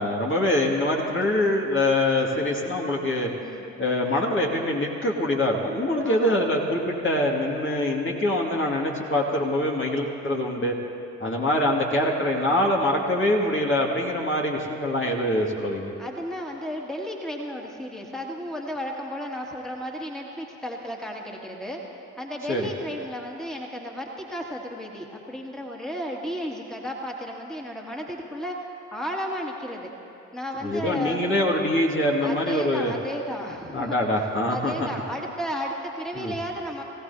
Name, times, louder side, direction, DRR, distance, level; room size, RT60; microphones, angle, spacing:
voice 1, 0.0-3.3 3.8-10.7 11.2-15.9 22.5-22.7 30.6-32.9 33.7-34.7 36.2-36.3, left 1 dB, 35° left, -2 dB, 2.1 m, -24 dB
voice 2, 6.0-6.4 16.0-29.9 30.3-31.3 32.2-34.0 34.5-36.8, equal, ahead, -1 dB, 2.2 m, -33 dB
24.0 x 16.5 x 2.8 m, 2.8 s
figure-of-eight pair, 45°, 37 cm